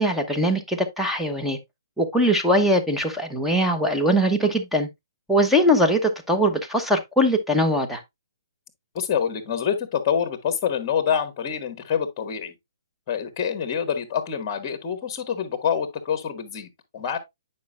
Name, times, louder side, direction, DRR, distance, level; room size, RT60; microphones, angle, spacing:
voice 1, 0.0-1.6 2.0-4.9 5.3-8.0, equal, ahead, 1.0 m, -21 dB
voice 2, 8.9-12.5 13.1-17.2, left 7 dB, 30° left, 1.7 m, -26 dB
9.5 x 5.3 x 2.4 m
hypercardioid pair, 145°, 2 cm